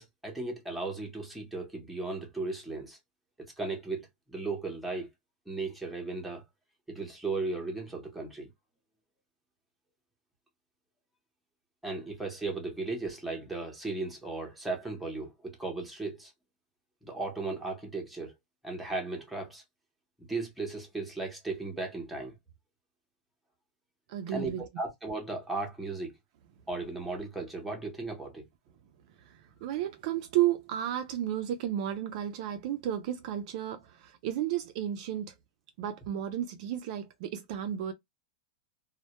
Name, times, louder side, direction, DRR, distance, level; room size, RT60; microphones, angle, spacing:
voice 1, 0.0-3.0 3.4-5.1 5.5-6.4 6.9-8.5 11.8-16.3 17.0-18.3 18.6-19.6 20.2-22.3 24.3-26.1 26.7-28.4, right 3 dB, ahead, 0.7 m, -36 dB
voice 2, 24.1-24.6 29.2-35.3 35.8-37.9, right 11 dB, 45° right, 0.3 m, -33 dB
2.1 x 2.1 x 2.8 m
supercardioid pair, 165°, 5 cm